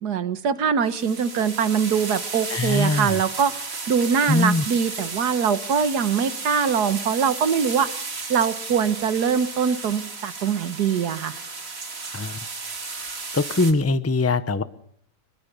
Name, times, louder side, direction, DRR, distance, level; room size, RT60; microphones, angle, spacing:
voice 1, 0.0-8.0 8.3-11.4, right 7 dB, 85° right, 13 dB, 1.8 m, -23 dB
sound 1, 0.8-13.7, right 4 dB, 60° right, 2.9 m, -34 dB
voice 2, 2.5-3.2 4.3-4.6 12.1-12.4 13.3-14.6, left 2 dB, 15° left, 13 dB, 0.7 m, -22 dB
24.5 x 22.0 x 6.8 m, 0.65 s
omnidirectional pair, 1.7 m